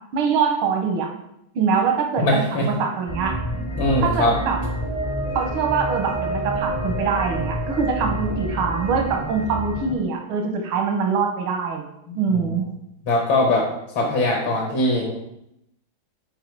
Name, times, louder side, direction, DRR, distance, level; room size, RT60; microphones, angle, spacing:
voice 1, 0.1-1.1 1.6-3.4 4.0-4.6 5.3-11.9 12.1-12.7, right 5 dB, 90° right, 3 dB, 1.9 m, -23 dB
voice 2, 2.2-2.7 3.8-4.3 12.1-12.5 13.1-13.7 14.0-15.1, left 1 dB, 70° left, -1 dB, 2.0 m, -21 dB
sound 1, 3.1-9.9, right 1 dB, 40° left, 0.4 m, -28 dB
7.3 x 4.6 x 4.7 m, 0.81 s
omnidirectional pair, 2.2 m